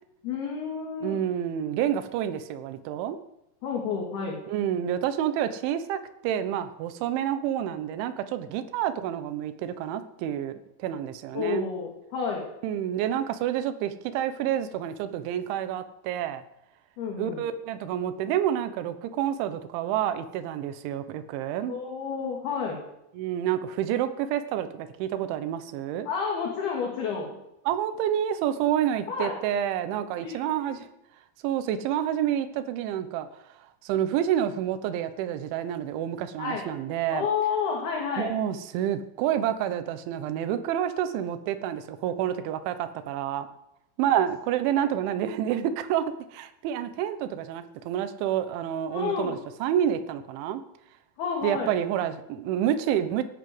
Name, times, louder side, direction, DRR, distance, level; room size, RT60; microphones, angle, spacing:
voice 1, 0.2-1.2 3.6-4.4 11.3-12.5 17.0-17.4 21.7-22.8 26.1-27.3 29.1-29.4 30.2-30.3 30.7-30.8 36.4-36.7 37.1-38.3 44.8-44.9 48.9-49.4 51.2-51.7, left 6 dB, 55° left, 0 dB, 4.0 m, -30 dB
voice 2, 1.0-3.2 4.5-11.7 12.6-16.4 17.2-21.8 23.1-26.1 27.7-30.9 31.4-33.3 33.8-37.3 38.2-43.5 44.0-46.0 46.3-50.6 51.4-53.2, right 10 dB, 75° right, 10 dB, 3.3 m, -28 dB
17.0 x 11.0 x 7.8 m, 0.84 s
omnidirectional pair, 5.8 m